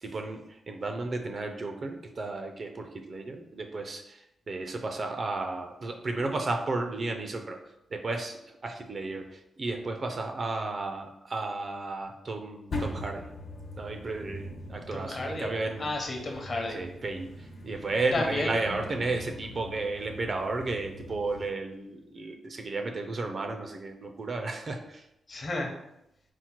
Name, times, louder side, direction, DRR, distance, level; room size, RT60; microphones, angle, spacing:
voice 1, 0.0-7.6 7.9-13.3 13.8-15.9 16.7-25.1, right 3 dB, 40° right, 4 dB, 0.4 m, -33 dB
sound 1, 12.7-21.5, left 1 dB, 60° left, 1.0 m, -41 dB
voice 2, 14.9-16.8 18.1-19.1 25.3-25.7, left 2 dB, 40° left, 1 dB, 0.8 m, -33 dB
4.3 x 2.1 x 4.4 m, 0.81 s
wide cardioid pair, 135°, 0 cm